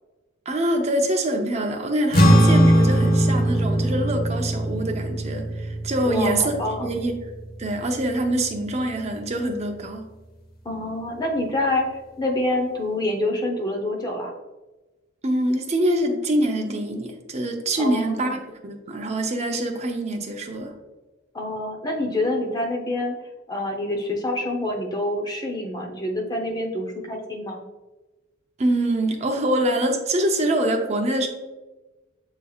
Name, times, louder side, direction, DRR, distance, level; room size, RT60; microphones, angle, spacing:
voice 1, 0.5-6.6 6.8-7.3 7.6-10.1 15.2-18.4 18.6-20.8 28.6-31.3, right 1 dB, 35° right, 3 dB, 0.6 m, -24 dB
sound 1, 2.1-8.8, right 1 dB, 50° left, 0.8 m, -21 dB
voice 2, 6.0-6.9 10.6-14.3 17.8-18.3 21.3-23.1 23.5-27.6, left 1 dB, 20° left, 1 dB, 0.7 m, -27 dB
7.0 x 3.3 x 2.3 m, 1.1 s
head